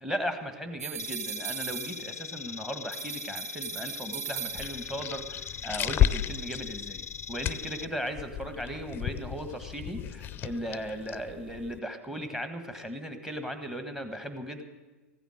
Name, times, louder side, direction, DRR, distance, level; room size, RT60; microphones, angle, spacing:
voice 1, 0.0-14.6, equal, 5° right, 8 dB, 1.5 m, -37 dB
sound 1, 0.8-2.5 2.9-5.1, right 11 dB, 75° right, 0.4 m, -39 dB
sound 2, 1.0-7.9, left 7 dB, 85° left, 0.5 m, -41 dB
sound 3, 4.5-11.8, left 11 dB, 25° left, 0.5 m, -33 dB
15.0 x 9.2 x 7.8 m, 1.2 s
hypercardioid pair, 105°, 8 cm